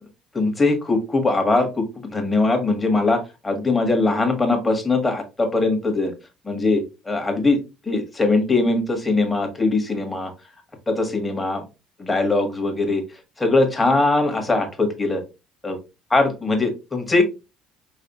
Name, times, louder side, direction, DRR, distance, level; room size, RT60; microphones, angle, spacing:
voice 1, 0.3-1.8 2.1-6.1 6.4-7.6 7.9-10.3 10.9-11.6 12.0-13.0 13.4-15.2 15.6-15.8 16.1-17.2, left 3 dB, 20° left, 5 dB, 1.6 m, -21 dB
4.9 x 3.3 x 3.0 m, 0.27 s
hypercardioid pair, 70°, 0 cm